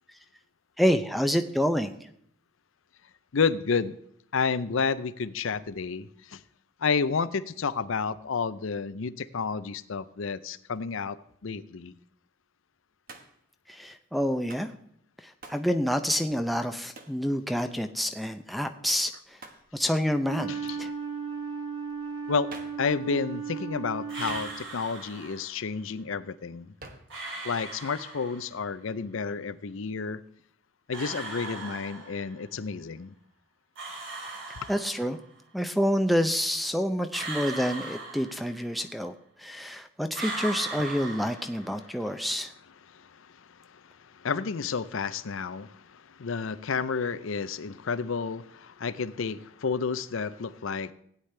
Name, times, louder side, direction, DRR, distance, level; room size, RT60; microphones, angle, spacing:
voice 1, 0.8-1.9 13.7-14.7 15.5-19.1 19.7-20.9 34.7-35.2 35.5-39.1 39.4-42.5, equal, ahead, 0.5 m, -28 dB
voice 2, 3.3-4.0 4.3-6.4 6.8-11.2 11.4-11.9 20.5-20.8 22.3-22.5 22.8-26.7 27.4-30.2 30.9-33.1 34.6-34.7 42.8-50.9, left 5 dB, 75° left, 0.6 m, -31 dB
Hands, 13.1-13.5 14.5-14.7 15.4-15.7 17.0-17.2 19.4-19.7 22.5-22.9 24.3-24.8 26.8-27.2, right 3 dB, 45° right, 1.3 m, -47 dB
Wind instrument woodwind instrument, 20.2-24.7, right 5 dB, 80° right, 2.1 m, -36 dB
sound 1, 24.1-25.6 27.1-28.6 30.9-32.5 33.8-35.3 37.1-38.9 40.1-42.0, right 2 dB, 65° right, 2.9 m, -38 dB
16.5 x 9.7 x 3.3 m
head